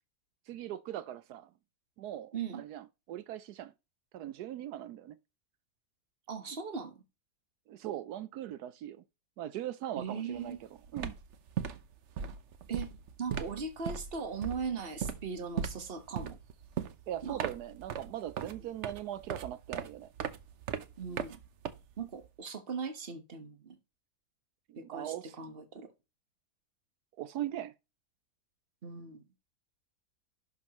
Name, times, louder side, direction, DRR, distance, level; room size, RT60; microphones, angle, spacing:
voice 1, 0.5-1.5 2.0-3.7 4.1-5.2 7.7-9.0 9.4-11.2 17.1-20.1 24.7-25.4 27.2-27.7, right 12 dB, 80° right, 1.2 m, -40 dB
voice 2, 6.3-7.0 10.0-10.6 12.7-12.9 13.2-16.4 17.2-17.4 21.0-21.4 22.0-23.8 24.8-25.9 28.8-29.2, right 5 dB, 40° right, 1.5 m, -39 dB
sound 1, 10.4-10.6 10.8-22.3, right 7 dB, 55° right, 1.0 m, -39 dB
11.0 x 6.3 x 3.0 m
omnidirectional pair, 1.7 m